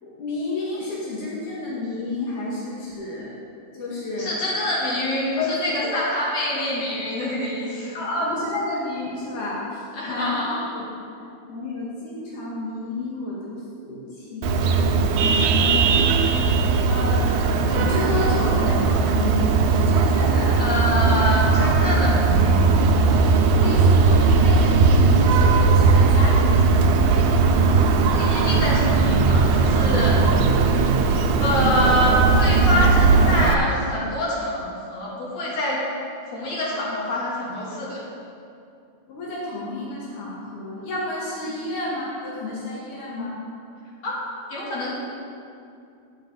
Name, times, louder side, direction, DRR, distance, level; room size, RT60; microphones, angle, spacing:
voice 1, 0.0-3.3 3.7-4.5 5.4-5.8 6.1-6.3 7.9-10.9 11.4-14.7 15.2-16.2 16.9-20.7 23.4-27.4 39.1-43.3, left 2 dB, 85° left, -6 dB, 3.1 m, -30 dB
voice 2, 4.2-8.0 9.9-10.7 20.6-22.8 28.1-30.5 31.4-35.8 36.2-38.0 41.5-41.6 44.0-44.1 44.5-44.9, left 1 dB, 60° left, -7 dB, 3.9 m, -26 dB
Vehicle horn car horn honking, 14.4-33.5, right 4 dB, 85° right, 2.2 m, -18 dB
13.0 x 9.5 x 3.9 m, 2.6 s
omnidirectional pair, 3.4 m